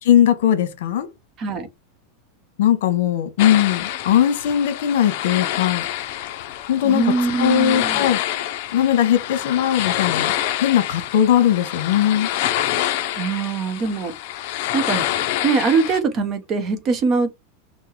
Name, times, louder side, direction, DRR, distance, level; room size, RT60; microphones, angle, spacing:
voice 1, 0.0-1.1 2.6-5.8 6.7-7.1 7.4-8.2 8.7-10.3 10.6-12.3, left 10 dB, 70° left, 1.1 m, -19 dB
sound 1, 3.4-16.0, left 13 dB, 50° left, 0.6 m, -26 dB
voice 2, 6.8-8.1 13.2-14.1 14.7-15.0 15.4-17.3, right 4 dB, 25° right, 0.8 m, -22 dB
4.7 x 2.2 x 4.6 m
supercardioid pair, 165°, 0 cm